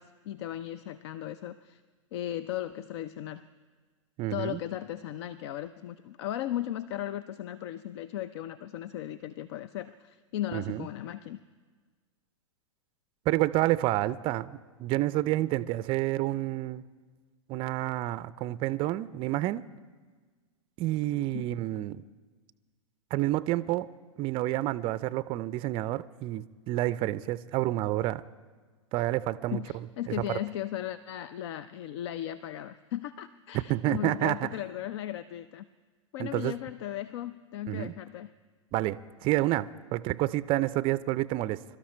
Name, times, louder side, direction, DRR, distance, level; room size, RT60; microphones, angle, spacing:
voice 1, 0.0-1.8 2.1-3.5 4.3-11.4 21.3-21.5 29.5-35.6 36.1-38.3, left 12 dB, 55° left, 15 dB, 0.5 m, -36 dB
voice 2, 4.2-4.6 10.5-10.9 13.3-16.8 17.5-19.6 20.8-22.0 23.1-23.9 24.2-28.2 28.9-29.6 30.1-30.4 33.5-34.5 36.2-36.5 37.7-37.9 38.7-41.6, right 16 dB, 30° right, 16 dB, 0.4 m, -29 dB
22.5 x 12.5 x 4.4 m, 1.5 s
hypercardioid pair, 110°, 17 cm